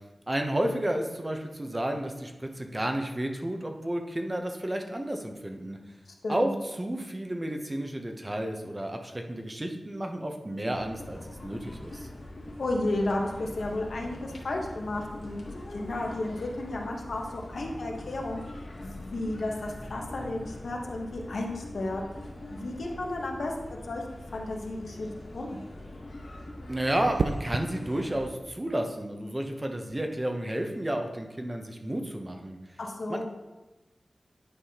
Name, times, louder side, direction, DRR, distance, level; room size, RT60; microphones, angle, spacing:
voice 1, 0.3-5.8 6.3-6.5 6.8-12.1 26.7-32.6 33.1-33.2, right 1 dB, 20° right, 4 dB, 0.7 m, -31 dB
voice 2, 6.2-6.6 12.6-22.0 22.5-25.1 25.3-25.6 32.8-33.2, left 2 dB, 80° left, 0 dB, 1.0 m, -33 dB
sound 1, 10.7-28.3, left 1 dB, 60° left, 1.5 m, -43 dB
sound 2, 27.2-27.7 29.7-30.0, right 4 dB, 90° right, 0.3 m, -31 dB
9.9 x 5.5 x 2.8 m, 1.1 s
wide cardioid pair, 105°, 0 cm